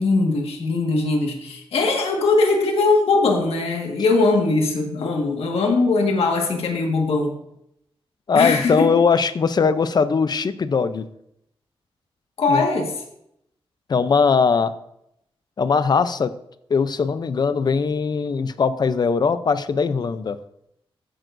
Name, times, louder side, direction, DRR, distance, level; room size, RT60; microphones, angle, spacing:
voice 1, 0.0-7.4 8.3-8.9 12.4-12.9, left 3 dB, 85° left, 2 dB, 1.7 m, -20 dB
voice 2, 8.3-11.1 12.5-12.7 13.9-14.7 15.6-16.3 16.7-20.4, left 5 dB, 45° left, 13 dB, 0.6 m, -20 dB
14.0 x 9.1 x 2.6 m, 0.78 s
wide cardioid pair, 110°, 10 cm